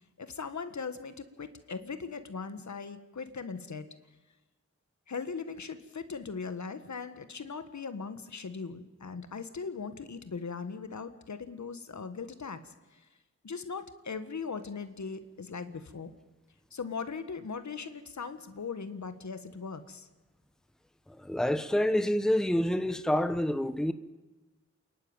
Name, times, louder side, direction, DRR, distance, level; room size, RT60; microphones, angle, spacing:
voice 1, 0.2-3.9 5.1-13.1 13.4-16.1 16.7-20.1, left 5 dB, 70° left, 1.5 m, -39 dB
voice 2, 21.2-23.9, left 1 dB, ahead, 1.0 m, -27 dB
28.0 x 11.5 x 9.0 m
wide cardioid pair, 60°, 30 cm